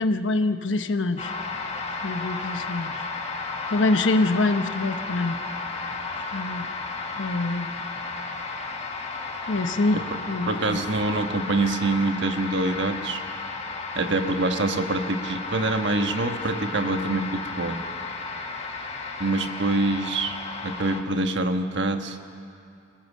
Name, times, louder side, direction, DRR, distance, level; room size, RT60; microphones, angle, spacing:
voice 1, 0.0-1.3 2.0-3.1 3.7-5.4 5.7-5.9 6.3-6.7 7.2-7.7 9.5-10.0 10.3-10.8, left 2 dB, 80° left, 9 dB, 1.0 m, -25 dB
sound 1, 1.2-21.0, left 3 dB, 35° left, 1.6 m, -33 dB
voice 2, 10.5-13.2 13.9-17.8 19.2-20.4 20.6-22.2, right 2 dB, 65° right, 6 dB, 1.4 m, -25 dB
26.5 x 17.5 x 7.4 m, 2.5 s
head